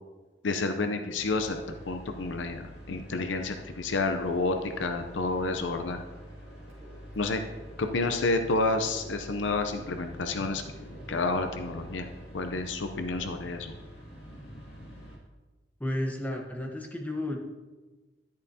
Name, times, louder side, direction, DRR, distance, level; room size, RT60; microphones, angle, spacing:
voice 1, 0.4-1.6 1.9-6.0 7.2-7.4 7.8-12.1 12.3-13.7, left 3 dB, 85° left, 6 dB, 0.6 m, -30 dB
sound 1, 1.1-15.2, equal, 60° left, 2.4 m, -46 dB
sound 2, 4.1-12.1, equal, 30° right, 2.1 m, -52 dB
voice 2, 15.8-17.4, left 1 dB, 10° left, 1 dB, 1.0 m, -32 dB
10.5 x 10.5 x 2.8 m, 1.2 s
head